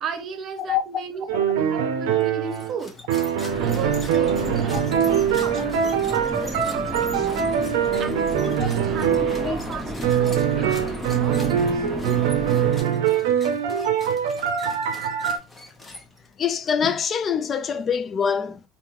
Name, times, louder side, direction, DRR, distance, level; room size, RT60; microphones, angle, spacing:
voice 1, 0.0-3.0 3.6-4.8 5.1-7.4 8.0-10.8 11.0-11.9, right 5 dB, 50° right, 0.7 m, -35 dB
sound 1, 1.3-2.7 3.1-9.7 10.0-15.4, right 8 dB, 90° right, 0.5 m, -23 dB
sound 2, 2.5-16.4, left 2 dB, 20° left, 0.9 m, -43 dB
sound 3, 3.5-12.8, equal, 5° right, 1.0 m, -32 dB
voice 2, 16.4-18.6, left 7 dB, 40° left, 0.4 m, -24 dB
3.4 x 2.7 x 3.0 m
supercardioid pair, 95°, 0 cm